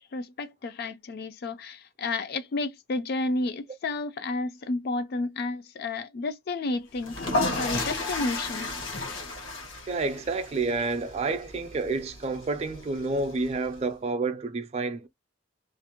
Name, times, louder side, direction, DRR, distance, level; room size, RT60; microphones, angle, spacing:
voice 1, 0.1-8.7, left 3 dB, 55° left, 0.4 m, -31 dB
sound 1, 7.0-13.8, left 2 dB, 85° left, 1.0 m, -33 dB
voice 2, 9.9-15.1, right 3 dB, 35° right, 0.3 m, -29 dB
2.5 x 2.0 x 2.8 m
head